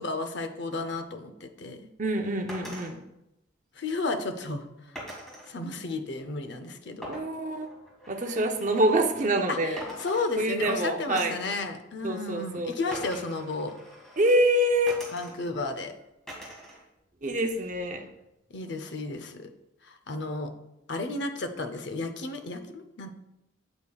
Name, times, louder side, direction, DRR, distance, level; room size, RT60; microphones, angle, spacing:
voice 1, 0.0-1.9 3.8-5.0 5.5-7.2 9.5-13.7 15.1-15.9 18.5-19.5 19.8-20.5 20.9-23.1, left 3 dB, 55° left, 8 dB, 0.7 m, -33 dB
voice 2, 2.0-3.0 7.1-7.7 8.1-9.8 10.4-11.4 12.0-13.0 14.2-15.0 17.2-18.0, right 1 dB, 40° right, 5 dB, 0.7 m, -26 dB
sound 1, 2.5-2.9 4.9-5.5 7.0-9.5 9.8-10.7 11.2-11.5 12.9-14.4 14.9-15.6 16.3-16.8 17.2-17.9, equal, ahead, 2.0 m, -44 dB
8.4 x 8.3 x 2.4 m, 0.87 s
head